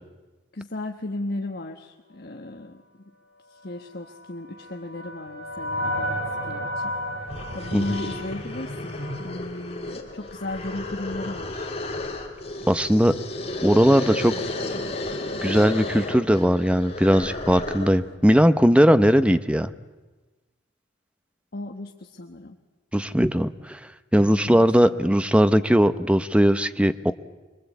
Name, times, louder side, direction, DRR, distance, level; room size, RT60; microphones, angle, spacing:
voice 1, 0.5-2.8 3.5-9.0 9.2-11.7 21.5-22.6 24.2-25.0, left 2 dB, 50° left, 3 dB, 1.2 m, -35 dB
sound 1, 4.1-9.4, equal, 55° right, 5.4 m, -32 dB
sound 2, 6.9-7.0 7.3-18.1, left 2 dB, 30° left, 2.9 m, -33 dB
voice 2, 12.7-13.1 13.6-14.3 15.4-19.7 22.9-23.8 24.1-27.1, equal, 5° right, 11 dB, 0.7 m, -19 dB
25.5 x 22.5 x 8.3 m, 1.2 s
head